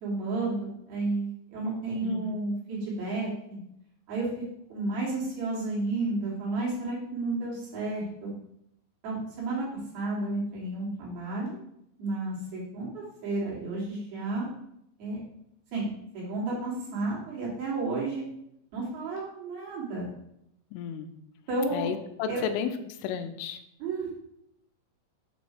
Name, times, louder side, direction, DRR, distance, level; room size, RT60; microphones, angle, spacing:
voice 1, 0.0-3.6 4.1-4.3 4.7-8.3 9.0-9.7 9.9-11.5 12.0-14.5 15.0-15.2 15.7-15.9 16.1-18.2 18.7-20.1 21.5-21.9 22.3-22.4 23.8-24.1, right 2 dB, 60° right, -7 dB, 3.8 m, -32 dB
voice 2, 2.0-2.3 20.7-21.1 21.7-22.7 23.0-23.6, left 7 dB, 85° left, 8 dB, 3.1 m, -32 dB
7.8 x 3.1 x 6.3 m, 0.76 s
omnidirectional pair, 5.6 m